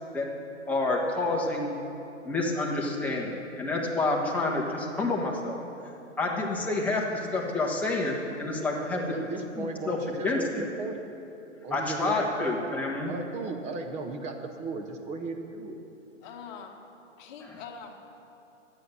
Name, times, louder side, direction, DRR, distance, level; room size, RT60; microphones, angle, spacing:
voice 1, 0.7-1.8 2.2-5.6 6.2-9.2 9.6-10.0 10.2-10.6 11.7-13.1 17.4-17.6, left 2 dB, 5° left, -4 dB, 1.4 m, -28 dB
voice 2, 8.9-11.0 11.6-12.8 13.0-15.8, right 3 dB, 20° right, 5 dB, 0.8 m, -36 dB
voice 3, 16.2-16.8 17.2-18.0, left 6 dB, 40° left, 2 dB, 1.5 m, -43 dB
12.5 x 8.7 x 6.8 m, 2.9 s
hypercardioid pair, 135°, 38 cm